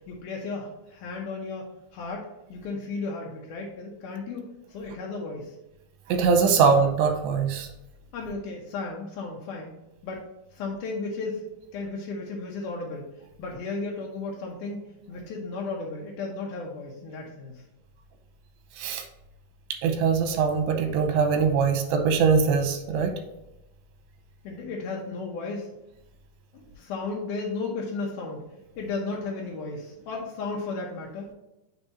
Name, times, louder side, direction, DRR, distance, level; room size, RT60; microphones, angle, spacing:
voice 1, 0.1-1.7 1.9-5.6 8.1-9.7 10.0-10.2 10.5-11.4 11.7-13.1 13.4-17.5 24.4-25.7 26.5-28.4 28.8-31.3, left 3 dB, 90° left, -1 dB, 1.8 m, -34 dB
voice 2, 6.1-7.7 18.8-19.0 19.8-23.1, right 5 dB, 90° right, 5 dB, 3.0 m, -22 dB
6.9 x 3.5 x 4.1 m, 0.94 s
omnidirectional pair, 4.8 m